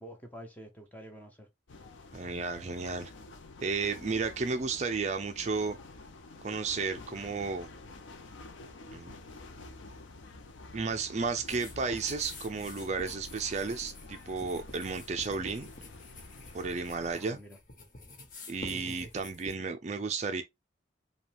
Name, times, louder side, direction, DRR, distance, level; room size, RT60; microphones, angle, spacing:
voice 1, 0.0-1.5 17.1-17.6 18.6-19.1, equal, 10° left, 0.8 m, -47 dB
sound 1, 1.7-17.1, left 2 dB, 90° left, 0.6 m, -49 dB
voice 2, 2.1-3.1 3.6-5.8 6.4-7.7 8.9-9.2 10.7-15.7 16.5-17.4 18.5-20.4, right 4 dB, 35° right, 0.4 m, -33 dB
sound 2, 11.5-19.5, left 2 dB, 45° left, 1.0 m, -49 dB
5.1 x 2.3 x 3.4 m
head